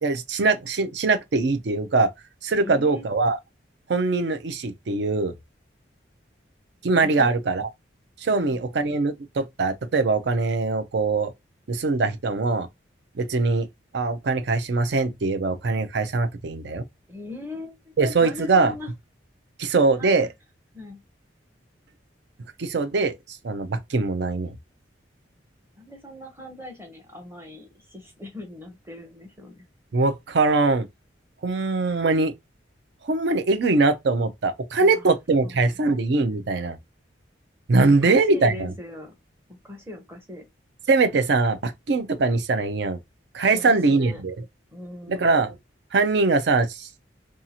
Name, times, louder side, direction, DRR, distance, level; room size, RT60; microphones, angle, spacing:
voice 1, 0.0-2.1 2.4-3.4 3.9-5.3 6.8-7.7 8.2-11.3 11.7-12.7 13.2-13.7 13.9-16.8 18.0-18.7 19.6-20.3 22.6-24.6 29.9-30.9 31.4-32.3 33.0-36.8 37.7-38.7 40.9-43.0 43.3-44.3 45.1-45.5 45.9-47.0, right 3 dB, 65° right, 0.4 m, -22 dB
voice 2, 2.6-3.1 7.0-7.3 8.3-8.6 17.1-18.9 20.0-20.2 20.7-21.0 25.8-29.7 34.8-35.2 35.4-36.5 37.8-39.1 39.6-40.4 43.5-44.2 44.7-45.4, left 2 dB, 10° right, 0.7 m, -40 dB
2.7 x 2.4 x 2.8 m
head